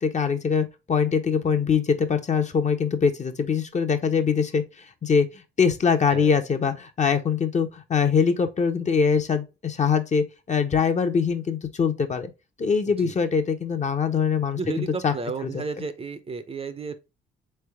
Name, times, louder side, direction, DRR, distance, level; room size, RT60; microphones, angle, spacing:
voice 1, 0.0-12.3 12.6-15.1 15.4-15.6, left 6 dB, 35° left, 0.7 m, -23 dB
voice 2, 14.5-17.0, right 4 dB, 30° right, 0.5 m, -32 dB
3.7 x 3.3 x 3.4 m
cardioid pair, 90°, 20 cm